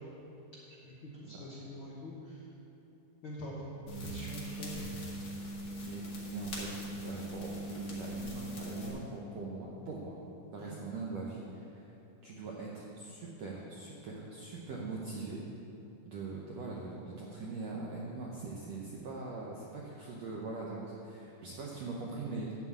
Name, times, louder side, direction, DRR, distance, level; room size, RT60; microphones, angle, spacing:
voice 1, 0.8-2.1 3.2-5.0 10.6-10.7, equal, 70° left, -6 dB, 1.2 m, -44 dB
sound 1, 3.9-8.9, right 1 dB, 45° left, 2.1 m, -40 dB
voice 2, 6.3-6.7 7.0-10.2 10.5-11.9 12.2-15.4 16.0-22.6, right 3 dB, 75° right, -4 dB, 1.5 m, -42 dB
11.5 x 4.7 x 8.1 m, 3.0 s
omnidirectional pair, 4.2 m